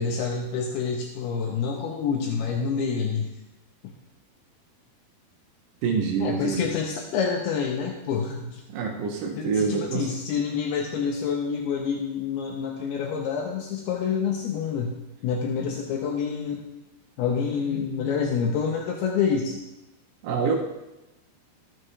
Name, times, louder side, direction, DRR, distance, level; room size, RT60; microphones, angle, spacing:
voice 1, 0.0-3.3 6.2-8.6 9.4-16.6 17.2-19.6, left 6 dB, 80° left, 0 dB, 2.6 m, -27 dB
voice 2, 5.8-6.6 8.7-10.1 20.2-20.6, right 5 dB, 75° right, 1 dB, 2.0 m, -26 dB
14.0 x 6.5 x 3.2 m, 0.98 s
omnidirectional pair, 4.7 m